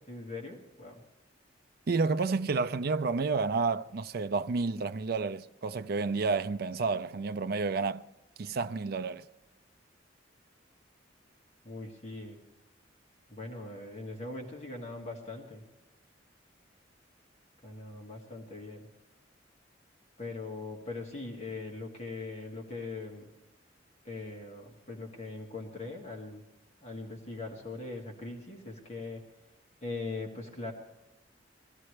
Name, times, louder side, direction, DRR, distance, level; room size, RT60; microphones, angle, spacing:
voice 1, 0.1-1.0 11.6-12.4 13.3-15.6 17.6-18.8 20.2-23.3 24.0-26.4 26.8-29.2 29.8-30.7, left 3 dB, 35° left, 1.7 m, -41 dB
voice 2, 1.9-8.0 8.4-9.3, right 4 dB, 55° right, 0.4 m, -30 dB
21.0 x 15.0 x 3.2 m
head